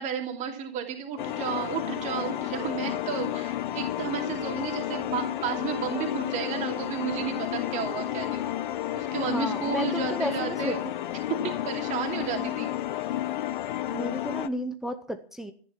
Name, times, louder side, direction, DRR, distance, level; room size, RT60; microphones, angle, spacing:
voice 1, 0.0-8.5 8.9-10.8 11.3-12.7, right 7 dB, 20° right, 4 dB, 2.8 m, -32 dB
sound 1, 1.2-14.5, left 12 dB, 50° left, 1.2 m, -31 dB
voice 2, 9.0-10.8 12.2-12.5 13.9-15.5, equal, ahead, 6 dB, 0.6 m, -33 dB
14.0 x 10.0 x 5.9 m, 0.43 s
hypercardioid pair, 155°, 32 cm